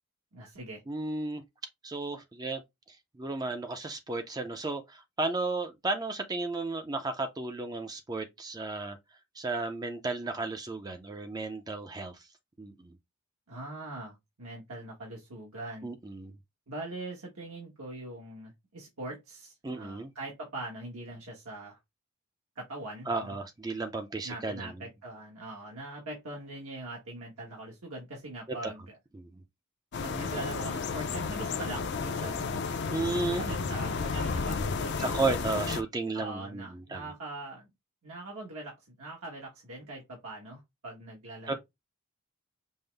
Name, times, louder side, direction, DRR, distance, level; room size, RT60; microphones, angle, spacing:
voice 1, 0.3-0.8 13.5-15.9 16.7-21.8 22.6-23.4 24.2-29.0 30.0-32.5 33.3-35.5 36.1-37.7 38.0-41.6, right 2 dB, 80° right, 1.1 m, -42 dB
voice 2, 0.9-1.4 1.8-2.6 2.9-9.0 9.4-12.3 12.6-12.9 15.8-16.3 19.6-20.1 23.1-24.7 28.5-28.7 29.1-29.3 32.9-33.6 35.0-37.0 41.5-41.6, right 3 dB, 20° right, 0.4 m, -34 dB
sound 1, 29.9-35.8, left 4 dB, 50° left, 0.5 m, -32 dB
5.4 x 2.0 x 3.2 m
head